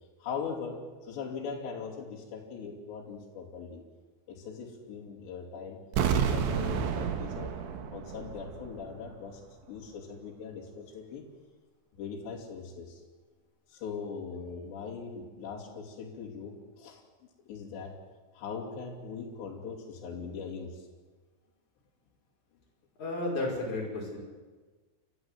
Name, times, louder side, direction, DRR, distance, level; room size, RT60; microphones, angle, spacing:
voice 1, 0.2-3.8 4.3-5.8 6.1-7.5 7.9-9.4 9.7-11.2 11.9-13.0 13.7-17.0 17.5-18.0 18.3-20.9, left 5 dB, 70° left, -3 dB, 5.0 m, -40 dB
sound 1, 5.9-8.8 9.1-9.2, right 7 dB, 80° right, 3.8 m, -30 dB
voice 2, 23.0-24.2, left 2 dB, 40° left, -2 dB, 6.6 m, -32 dB
29.0 x 14.0 x 7.9 m, 1.4 s
omnidirectional pair, 5.3 m